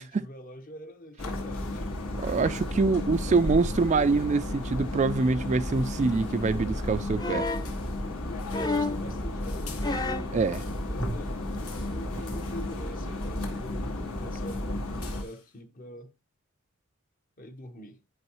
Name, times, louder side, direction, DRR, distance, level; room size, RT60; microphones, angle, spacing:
voice 1, 0.0-1.8 2.7-3.3 8.3-9.8 10.8-11.4 11.7-16.1 17.4-18.0, left 1 dB, 40° left, 1.0 m, -45 dB
sound 1, 1.2-15.2, left 1 dB, 75° left, 2.5 m, -33 dB
voice 2, 2.2-7.5 10.3-10.6, right 4 dB, 35° right, 0.3 m, -25 dB
sound 2, 7.2-7.7 8.5-9.1 9.8-10.3 11.5-11.6, left 3 dB, 20° left, 0.6 m, -30 dB
sound 3, 7.4-11.0 11.3-12.8 13.2-13.8 14.1-15.6, left 6 dB, 90° left, 1.8 m, -52 dB
11.0 x 5.4 x 3.1 m
head